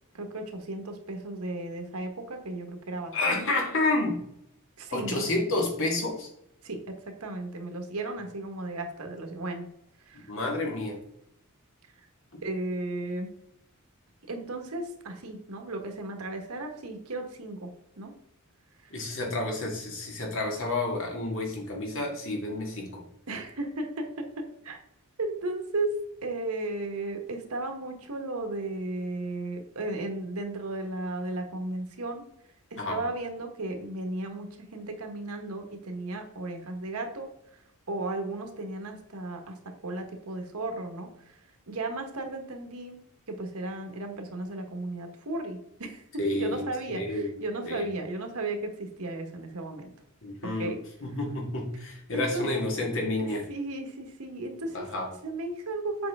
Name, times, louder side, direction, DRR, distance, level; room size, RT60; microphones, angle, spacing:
voice 1, 0.1-3.4 4.8-5.2 6.6-9.7 10.1-10.3 12.4-13.3 14.3-17.7 18.0-18.1 18.8-18.9 23.3-24.8 25.2-32.2 32.7-37.6 37.9-39.6 39.8-41.4 41.7-43.0 43.3-46.0 46.3-49.9 50.6-50.8 52.1-52.5 53.2-54.8 55.2-56.1, right 2 dB, 85° right, 4 dB, 1.4 m, -35 dB
voice 2, 3.1-4.2 4.9-6.3 10.3-11.0 18.9-23.0 32.8-33.0 46.2-46.6 46.9-47.3 47.7-47.9 50.2-50.7 51.0-53.5 54.7-55.1, left 2 dB, 65° left, 0 dB, 1.9 m, -30 dB
7.6 x 5.0 x 3.6 m, 0.77 s
head